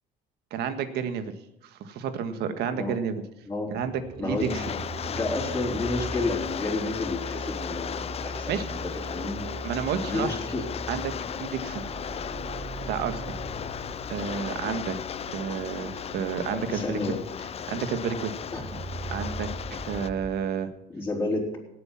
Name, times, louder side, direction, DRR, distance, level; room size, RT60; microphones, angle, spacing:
voice 1, 0.5-1.3 1.6-3.2 3.7-4.6 8.5-8.6 9.6-10.3 10.9-11.8 12.9-13.2 14.1-15.0 15.3-17.0 17.7-18.3 19.1-20.7, right 7 dB, 75° right, 9 dB, 1.7 m, -30 dB
voice 2, 3.5-3.8 4.2-4.7 5.1-9.5 10.1-10.7 16.5-17.2 18.5-18.8 20.9-21.6, left 2 dB, 15° left, -4 dB, 4.1 m, -31 dB
sound 1, 3.7-20.3, right 2 dB, 40° right, 5.8 m, -40 dB
Rain, 4.4-20.1, left 8 dB, 35° left, 0.6 m, -36 dB
18.0 x 8.0 x 5.9 m, 0.89 s
cardioid pair, 110°, 17 cm